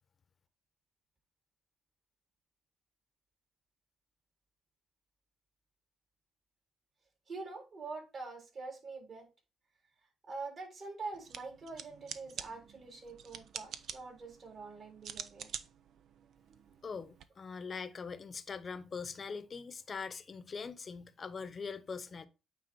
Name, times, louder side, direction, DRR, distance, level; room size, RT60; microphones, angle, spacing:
voice 1, 7.3-9.3 10.3-15.5, right 3 dB, 50° right, 3.7 m, -45 dB
sound 1, 11.1-17.2, right 8 dB, 70° right, 0.6 m, -48 dB
voice 2, 16.8-22.3, left 5 dB, 40° left, 0.9 m, -42 dB
8.9 x 3.7 x 4.5 m
cardioid pair, 90°, 0 cm